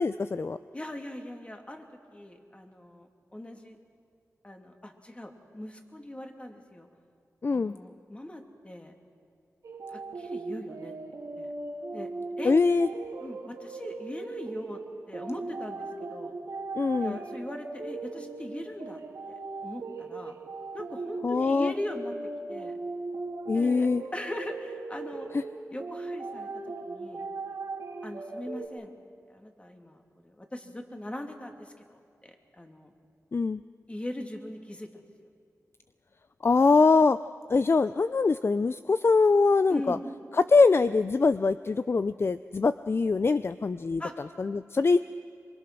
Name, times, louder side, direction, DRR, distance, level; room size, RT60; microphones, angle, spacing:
voice 1, 0.0-0.6 7.4-7.8 12.4-12.9 16.7-17.2 21.2-21.7 23.5-24.0 25.3-25.4 33.3-33.6 36.4-37.2 37.5-40.0 40.4-44.0 44.4-45.0, left 4 dB, 45° left, 13 dB, 0.5 m, -23 dB
voice 2, 0.7-3.8 4.4-6.9 7.5-8.9 9.9-11.0 11.4-11.5 11.9-12.1 12.4-12.6 13.2-14.8 15.1-16.3 17.0-19.0 19.3-20.4 20.7-22.1 22.5-22.8 23.5-23.9 24.1-25.3 25.7-26.5 26.8-27.2 28.0-28.9 29.3-32.9 33.9-35.0 39.7-40.0 44.0-44.3, left 1 dB, 20° left, 3 dB, 2.8 m, -40 dB
sound 1, 9.6-28.7, right 3 dB, 90° right, 2.9 m, -38 dB
25.5 x 23.0 x 6.2 m, 2.4 s
cardioid pair, 55°, 6 cm